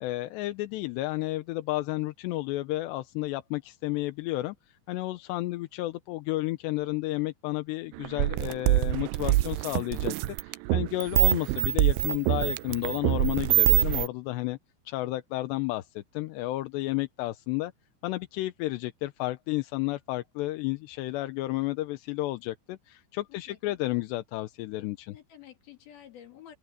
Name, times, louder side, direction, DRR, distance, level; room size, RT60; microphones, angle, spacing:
voice 1, 0.0-4.6 4.9-10.1 10.4-14.6 14.9-17.7 18.0-25.1, left 18 dB, 75° left, 2.8 m, -32 dB
sound 1, 8.0-14.1, right 18 dB, 85° right, 2.5 m, -24 dB
voice 2, 23.3-23.8 25.1-26.6, left 10 dB, 55° left, 4.6 m, -50 dB
open air
omnidirectional pair, 5.4 m